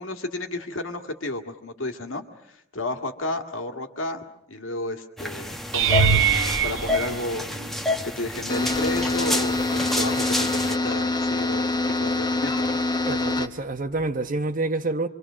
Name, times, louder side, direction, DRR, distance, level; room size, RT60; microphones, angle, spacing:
voice 1, 0.0-6.2 6.6-12.8, left 2 dB, 80° left, 2.1 m, -32 dB
sound 1, 5.2-10.8, left 1 dB, ahead, 1.0 m, -29 dB
sound 2, 5.7-8.0 8.7-9.2 9.5-9.7 14.0-14.1, right 6 dB, 70° right, 1.2 m, -24 dB
sound 3, 8.5-13.5, left 2 dB, 20° left, 1.1 m, -25 dB
voice 2, 13.1-15.1, right 2 dB, 40° right, 1.1 m, -27 dB
27.0 x 24.5 x 6.3 m
head